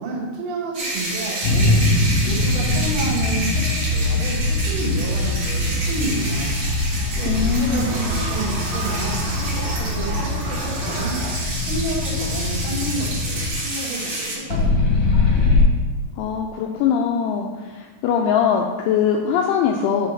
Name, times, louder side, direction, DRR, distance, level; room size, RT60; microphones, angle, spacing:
voice 1, 0.0-1.8 2.3-6.6 6.9-11.2 11.7-15.2, right 2 dB, 85° right, -5 dB, 4.1 m, -30 dB
sound 1, 0.7-14.3, right 1 dB, 45° right, 2.0 m, -30 dB
sound 2, 1.4-13.5 14.5-15.6, left 2 dB, 65° left, 1.7 m, -22 dB
sound 3, 7.0-11.3, right 2 dB, 65° right, 2.9 m, -33 dB
voice 2, 7.3-7.9 16.2-20.1, left 7 dB, 85° left, 2 dB, 2.7 m, -21 dB
10.5 x 3.9 x 4.0 m, 1.3 s
omnidirectional pair, 5.9 m